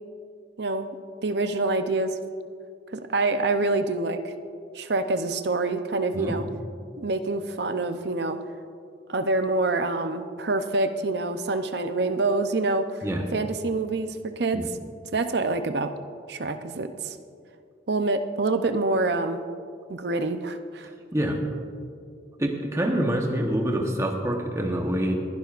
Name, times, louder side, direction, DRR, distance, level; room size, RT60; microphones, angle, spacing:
voice 1, 0.6-0.9 1.2-2.1 2.9-4.3 4.7-6.4 7.0-8.4 9.1-12.8 13.3-14.1 14.4-14.6 15.1-15.9 16.3-17.2 17.9-19.4 19.9-20.9, right 3 dB, 60° right, 9 dB, 0.6 m, -26 dB
voice 2, 22.4-25.2, right 1 dB, 15° right, 2 dB, 1.0 m, -26 dB
21.0 x 11.5 x 2.5 m, 2.3 s
head